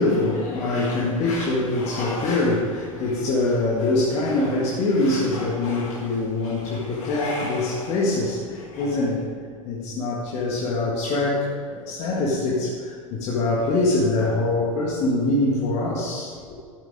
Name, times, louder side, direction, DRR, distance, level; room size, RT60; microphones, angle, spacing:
voice 1, 0.0-9.3 9.7-16.5, left 2 dB, 40° left, -4 dB, 1.9 m, -24 dB
12.5 x 9.2 x 3.7 m, 2.1 s
figure-of-eight pair, 85°, 18 cm